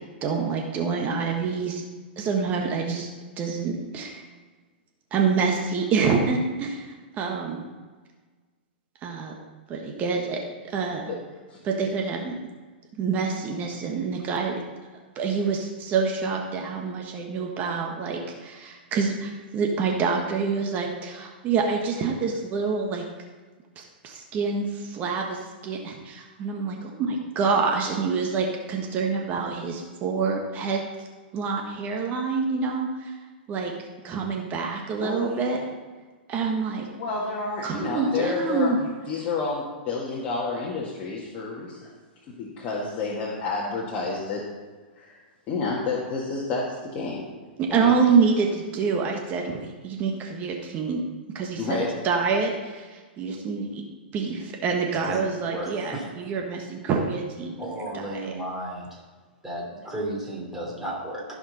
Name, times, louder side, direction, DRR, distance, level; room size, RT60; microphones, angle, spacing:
voice 1, 0.2-1.8 2.2-3.1 3.4-4.2 5.1-7.6 9.0-9.4 9.7-11.0 11.6-12.4 13.0-14.6 15.1-23.0 23.8-30.9 31.3-33.1 33.5-33.7 34.0-35.6 36.3-36.9 37.6-38.8 47.6-51.0 51.3-53.8 54.1-58.4, right 5 dB, 30° right, 1 dB, 1.4 m, -27 dB
voice 2, 35.0-35.6 37.0-41.9 42.4-44.4 44.9-45.2 45.5-47.2 47.7-48.0 51.6-51.9, left 3 dB, 35° left, -5 dB, 1.8 m, -30 dB
voice 3, 55.5-56.3 57.6-59.0 59.4-61.2, right 1 dB, 5° right, -4 dB, 3.0 m, -34 dB
15.0 x 5.1 x 4.1 m, 1.4 s
hypercardioid pair, 125°, 5 cm